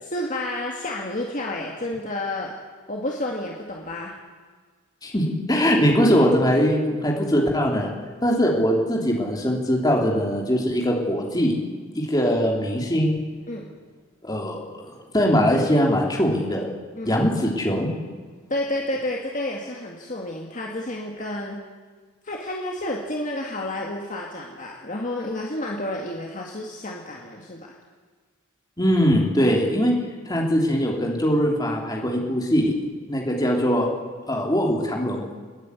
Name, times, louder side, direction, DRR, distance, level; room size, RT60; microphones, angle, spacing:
voice 1, 0.0-2.5 2.9-4.1 13.5-13.7 17.0-17.2 18.5-21.6 22.2-27.8, left 1 dB, 35° left, -1 dB, 2.0 m, -30 dB
voice 2, 5.0-7.9 8.2-11.5 11.9-13.2 14.2-16.6 17.0-17.9 28.8-30.0 30.2-32.7 33.1-33.9 34.3-35.3, equal, 20° left, -1 dB, 3.3 m, -21 dB
30.0 x 10.0 x 9.8 m, 1.5 s
head